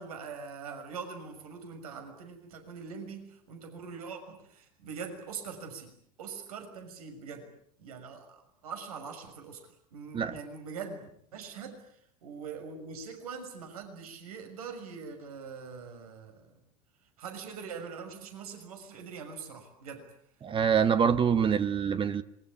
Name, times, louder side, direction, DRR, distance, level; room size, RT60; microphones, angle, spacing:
voice 1, 0.0-7.5 7.8-16.6 17.2-20.1, right 5 dB, 70° right, 6.3 m, -43 dB
voice 2, 20.4-22.2, right 7 dB, 25° right, 1.4 m, -25 dB
27.0 x 23.0 x 8.7 m
figure-of-eight pair, 80°, 19 cm